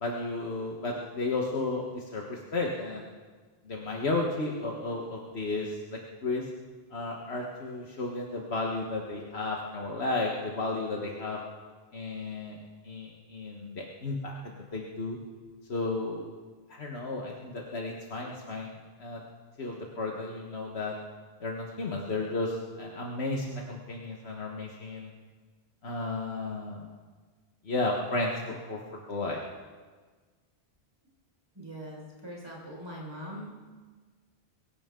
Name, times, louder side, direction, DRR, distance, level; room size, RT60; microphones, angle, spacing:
voice 1, 0.0-3.1 3.7-6.5 6.9-11.4 11.9-12.6 12.8-15.2 15.7-16.3 16.7-19.2 19.6-21.0 21.4-25.1 25.8-26.9 27.7-28.8 29.1-29.4, left 2 dB, 80° left, -1 dB, 1.7 m, -33 dB
voice 2, 31.6-33.5, equal, 25° right, -4 dB, 5.3 m, -42 dB
23.0 x 15.5 x 3.8 m, 1.4 s
omnidirectional pair, 1.1 m